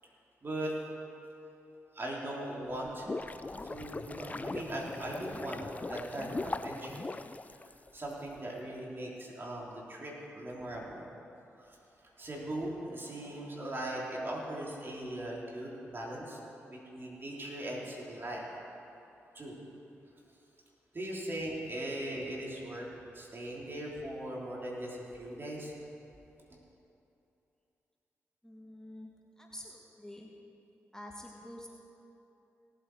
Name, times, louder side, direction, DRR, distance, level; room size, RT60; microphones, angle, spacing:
voice 1, 0.4-0.8 1.9-3.1 3.4-7.1 7.9-11.0 11.6-11.8 12.2-16.4 16.7-18.5 19.3-19.5 20.9-22.9 23.1-25.7 28.9-29.1, right 1 dB, 40° right, -3 dB, 3.4 m, -39 dB
sound 1, 2.7-8.1, left 3 dB, 25° left, 0.5 m, -40 dB
voice 2, 28.4-29.1 29.4-30.3 30.9-31.7, left 1 dB, 10° left, -1 dB, 1.8 m, -47 dB
18.0 x 8.0 x 4.7 m, 2.8 s
supercardioid pair, 45°, 6 cm